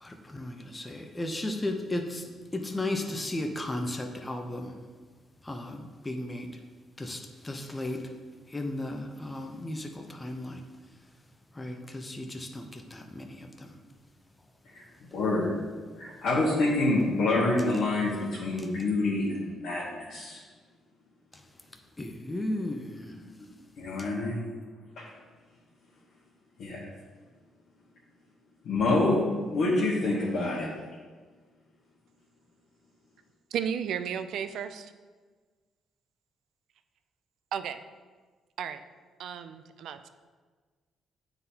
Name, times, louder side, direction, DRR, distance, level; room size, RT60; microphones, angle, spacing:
voice 1, 0.0-2.2 2.5-4.7 5.4-6.5 7.0-8.0 8.5-10.6 11.5-13.7 22.0-23.2, left 1 dB, 15° left, 4 dB, 0.6 m, -35 dB
voice 2, 15.1-15.6 16.0-20.4 23.2-23.3 23.8-24.4 25.0-25.1 26.6-26.8 28.6-29.2 29.5-30.7, left 2 dB, 70° left, -8 dB, 1.4 m, -27 dB
voice 3, 33.5-34.9 37.5-37.8 38.6-38.8 39.2-40.1, right 8 dB, 75° right, 10 dB, 0.3 m, -33 dB
9.3 x 3.9 x 2.8 m, 1.4 s
cardioid pair, 90°, 0 cm